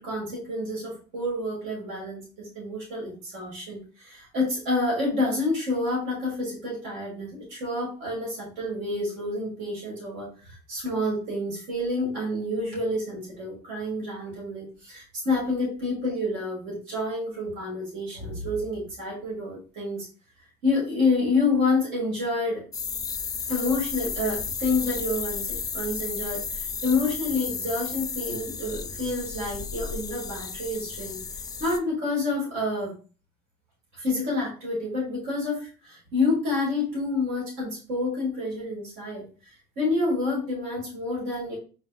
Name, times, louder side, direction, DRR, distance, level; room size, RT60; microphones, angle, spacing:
voice 1, 0.0-20.1 20.6-22.6 23.5-31.2 31.6-32.9 33.9-39.2 39.8-41.5, left 2 dB, 85° right, -4 dB, 2.1 m, -28 dB
sound 1, 22.7-31.8, left 5 dB, 20° left, 0.4 m, -33 dB
4.8 x 3.3 x 2.3 m, 0.36 s
cardioid pair, 110°, 20 cm